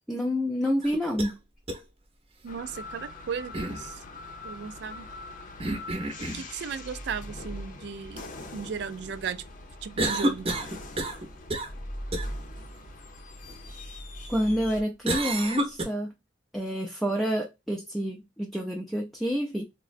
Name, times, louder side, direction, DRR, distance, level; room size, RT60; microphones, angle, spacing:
voice 1, 0.1-1.4 14.3-16.1 16.5-19.6, equal, ahead, 0.4 m, -28 dB
sound 1, 0.8-1.3 1.7-1.8 3.5-3.8 5.6-6.5 10.0-11.2 11.5-11.8 12.1-12.3 15.1-15.8, right 1 dB, 35° right, 0.7 m, -29 dB
voice 2, 2.4-4.0 4.4-5.1 6.2-8.3 8.5-9.4 9.8-10.5, right 6 dB, 65° right, 0.4 m, -36 dB
sound 2, 2.5-14.8, left 1 dB, 45° left, 0.6 m, -41 dB
3.7 x 2.1 x 2.4 m
head